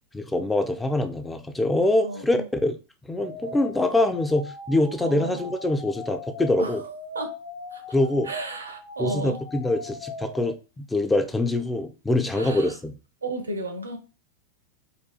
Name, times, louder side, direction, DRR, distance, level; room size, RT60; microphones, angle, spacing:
voice 1, 0.1-2.8 3.1-6.8 7.9-8.3 9.0-12.9, left 2 dB, 10° left, 0.3 m, -24 dB
voice 2, 2.0-2.5 5.0-5.4 6.6-6.8 7.1-7.4 7.7-7.8 8.2-9.4 12.3-12.8 13.2-14.0, right 2 dB, 75° right, 0.5 m, -33 dB
sound 1, 3.2-10.5, left 2 dB, 75° left, 0.9 m, -39 dB
2.5 x 2.3 x 2.3 m
figure-of-eight pair, 90°, 0 cm